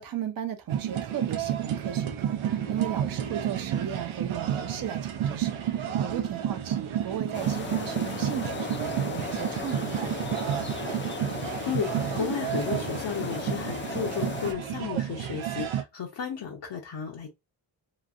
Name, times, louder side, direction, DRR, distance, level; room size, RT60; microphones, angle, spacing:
voice 1, 0.0-10.5, right 9 dB, 45° right, 0.6 m, -37 dB
sound 1, 0.7-15.8, right 10 dB, 85° right, 0.6 m, -31 dB
sound 2, 7.3-14.5, left 5 dB, 25° left, 0.4 m, -36 dB
voice 2, 12.1-17.3, left 7 dB, 60° left, 0.8 m, -33 dB
3.0 x 2.5 x 2.4 m
cardioid pair, 90°, 47 cm